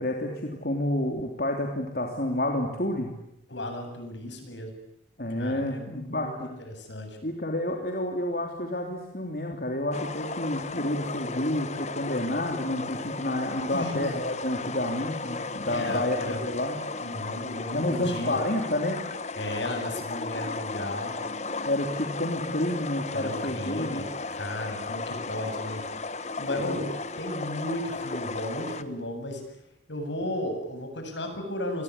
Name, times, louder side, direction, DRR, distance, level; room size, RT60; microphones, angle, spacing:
voice 1, 0.0-3.1 5.2-6.5 7.2-16.8 17.7-19.0 21.6-24.0 26.5-26.8, left 1 dB, 55° left, 2 dB, 3.3 m, -29 dB
voice 2, 3.5-4.7 5.3-7.2 13.7-14.1 15.7-16.4 17.0-18.4 19.3-21.2 23.1-26.9 27.2-29.4 29.9-31.8, left 1 dB, 80° left, 5 dB, 8.0 m, -35 dB
sound 1, 9.9-28.8, left 3 dB, 35° left, 1.2 m, -35 dB
27.5 x 21.5 x 9.8 m, 0.82 s
head